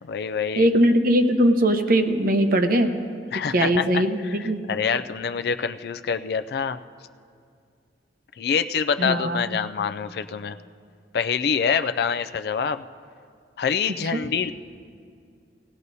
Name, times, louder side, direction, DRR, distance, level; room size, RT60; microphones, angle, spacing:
voice 1, 0.0-0.7 3.3-6.8 8.4-10.6 11.1-12.8 13.6-14.5, left 6 dB, 60° left, 11 dB, 0.3 m, -26 dB
voice 2, 0.6-2.9 3.5-4.6 9.0-9.6 14.1-14.2, right 1 dB, 55° right, 6 dB, 0.8 m, -20 dB
18.0 x 16.0 x 2.7 m, 2.3 s
head